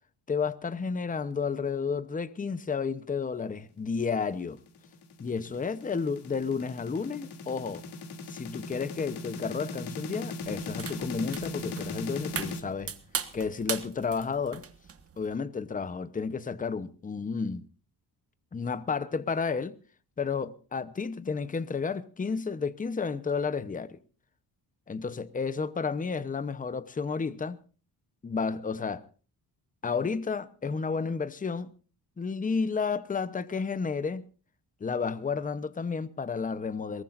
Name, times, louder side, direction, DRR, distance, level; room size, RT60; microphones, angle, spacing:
voice 1, 0.3-4.6 5.2-7.9 8.3-12.9 13.3-14.6 15.2-17.7 18.5-19.8 20.2-24.0 24.9-27.6 28.2-29.0 29.8-31.7 32.2-34.3 34.8-37.0, left 5 dB, 20° left, 0.8 m, -31 dB
sound 1, 4.5-12.6, left 3 dB, 80° left, 2.9 m, -38 dB
sound 2, 10.4-15.4, right 6 dB, 35° right, 1.4 m, -39 dB
22.5 x 20.5 x 2.6 m
wide cardioid pair, 160°, 39 cm